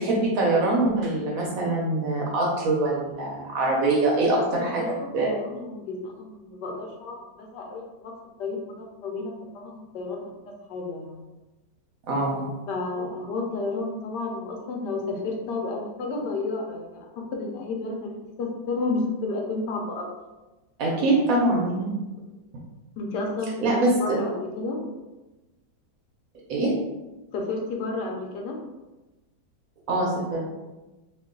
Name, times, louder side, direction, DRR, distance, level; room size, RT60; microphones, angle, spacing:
voice 1, 0.0-4.8 5.1-5.3 12.1-12.5 20.8-21.9 23.6-23.9 26.5-26.7 29.9-30.5, right 2 dB, 70° right, -2 dB, 0.8 m, -23 dB
voice 2, 4.5-8.1 8.4-11.2 12.7-20.1 21.1-21.2 23.0-24.8 27.3-28.6, left 3 dB, 75° left, 0 dB, 1.2 m, -32 dB
3.0 x 2.4 x 3.6 m, 1.1 s
omnidirectional pair, 2.0 m